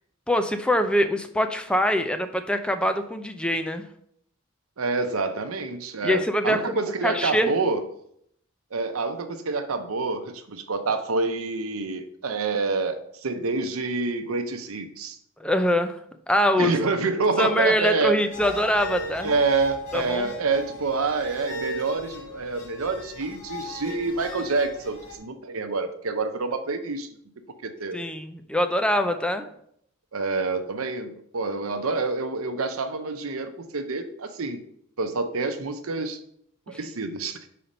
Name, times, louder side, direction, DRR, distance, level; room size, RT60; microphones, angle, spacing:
voice 1, 0.3-3.9 6.0-6.8 7.0-7.5 15.4-16.0 16.3-16.7 17.4-19.3 19.9-20.3 27.9-29.5, equal, 5° left, 8 dB, 0.4 m, -23 dB
voice 2, 4.8-7.8 8.7-15.2 16.6-18.2 19.2-27.1 27.6-28.0 30.1-34.6 35.0-36.2 36.7-37.5, right 3 dB, 85° right, 8 dB, 0.8 m, -27 dB
sound 1, 18.3-25.2, left 1 dB, 90° left, 1.9 m, -37 dB
5.7 x 4.2 x 5.1 m, 0.70 s
head